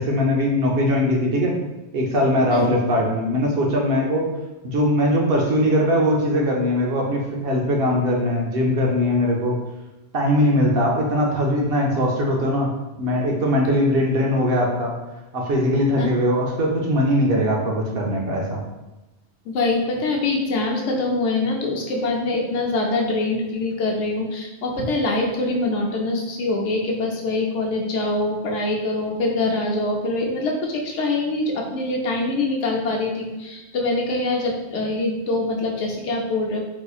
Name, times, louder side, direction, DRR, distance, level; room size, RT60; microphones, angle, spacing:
voice 1, 0.0-1.5 1.9-4.2 4.6-9.6 10.1-14.9 15.3-18.6, equal, 60° right, 0 dB, 0.8 m, -21 dB
voice 2, 19.5-36.6, left 2 dB, 90° left, 0 dB, 1.0 m, -24 dB
4.0 x 2.8 x 2.3 m, 1.0 s
omnidirectional pair, 1.2 m